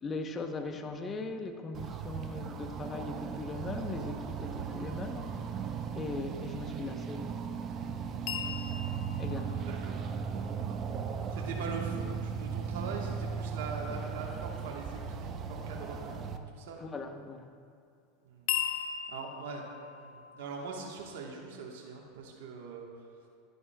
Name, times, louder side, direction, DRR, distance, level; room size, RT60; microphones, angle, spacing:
voice 1, 0.0-5.3 5.9-7.4 9.2-9.7 16.7-17.5, left 3 dB, 25° left, 6 dB, 0.7 m, -39 dB
sound 1, 1.7-16.4, right 6 dB, 35° right, 0.5 m, -37 dB
sound 2, 8.3-12.2 18.5-21.2, left 9 dB, 60° left, 0.8 m, -39 dB
voice 2, 9.6-10.0 11.3-16.8 18.2-18.5 19.1-19.7 20.0-22.9, right 4 dB, 75° right, -1 dB, 1.2 m, -42 dB
11.0 x 10.5 x 2.2 m, 2.4 s
supercardioid pair, 110°, 0 cm